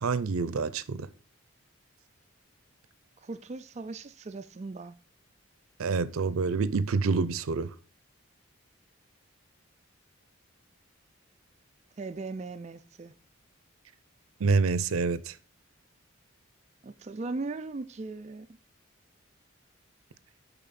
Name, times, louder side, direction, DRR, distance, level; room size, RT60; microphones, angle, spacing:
voice 1, 0.0-1.1 5.8-7.7 14.4-15.3, right 4 dB, 85° right, 0.5 m, -27 dB
voice 2, 3.2-5.0 12.0-13.1 16.8-18.5, right 3 dB, 30° right, 0.3 m, -38 dB
7.0 x 5.7 x 4.1 m
head